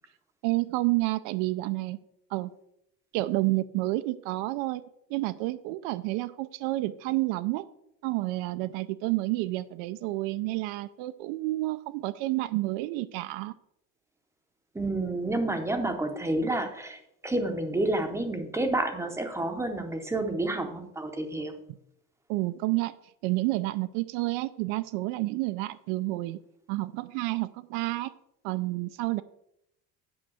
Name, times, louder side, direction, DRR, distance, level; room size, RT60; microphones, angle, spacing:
voice 1, 0.4-2.0 2.3-2.5 3.1-4.8 5.1-7.6 8.0-13.5 22.3-22.9 23.2-26.4 26.7-28.1 28.4-29.2, right 19 dB, 85° right, 13 dB, 0.5 m, -29 dB
voice 2, 14.7-21.5, right 2 dB, 5° right, 6 dB, 0.6 m, -29 dB
8.7 x 5.3 x 6.2 m, 0.80 s
cardioid pair, 175°, 40 cm